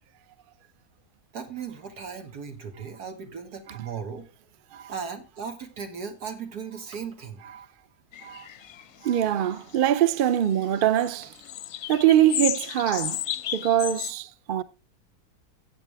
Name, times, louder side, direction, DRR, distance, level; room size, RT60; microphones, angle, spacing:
voice 1, 1.3-4.3 4.9-7.4, right 6 dB, 90° right, 2.3 m, -37 dB
sound 1, 8.1-10.2 10.5-14.1, left 10 dB, 60° left, 0.8 m, -33 dB
voice 2, 9.0-11.3 11.9-13.2 13.5-14.6, right 11 dB, 60° right, 0.5 m, -23 dB
14.0 x 8.6 x 3.4 m
omnidirectional pair, 1.7 m